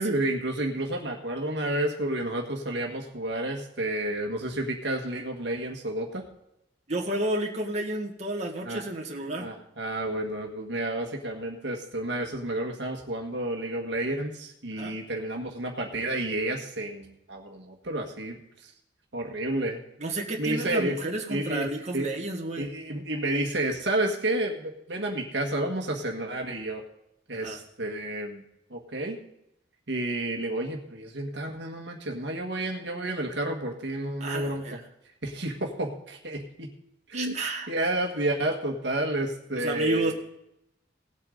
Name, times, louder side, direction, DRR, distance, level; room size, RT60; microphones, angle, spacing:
voice 1, 0.0-6.2 8.6-8.9 9.4-18.4 18.6-18.7 19.1-19.8 20.4-21.0 21.3-22.1 22.6-26.8 27.3-28.4 28.7-29.2 29.9-34.8 35.2-36.7 37.1-37.3 37.7-40.1, right 1 dB, 70° right, 1 dB, 1.6 m, -30 dB
voice 2, 6.9-9.5 14.8-14.9 20.0-22.7 27.3-27.6 34.2-34.8 37.1-37.7 39.5-40.1, right 2 dB, 40° right, -1 dB, 1.8 m, -31 dB
18.0 x 8.3 x 3.9 m, 0.81 s
head